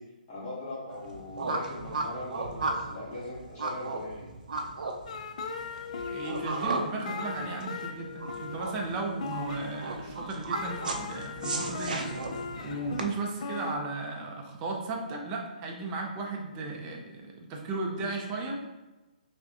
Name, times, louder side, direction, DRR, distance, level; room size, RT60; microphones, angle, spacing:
voice 1, 0.3-4.2, left 1 dB, 20° left, -10 dB, 1.3 m, -40 dB
sound 1, 0.9-13.0, right 3 dB, 65° right, 0.6 m, -35 dB
sound 2, 5.1-13.8, left 4 dB, 50° left, 0.4 m, -38 dB
voice 2, 6.1-12.1 12.6-18.8, right 3 dB, 20° right, 0 dB, 0.5 m, -35 dB
5.7 x 2.1 x 2.8 m, 1.1 s
hypercardioid pair, 165°, 5 cm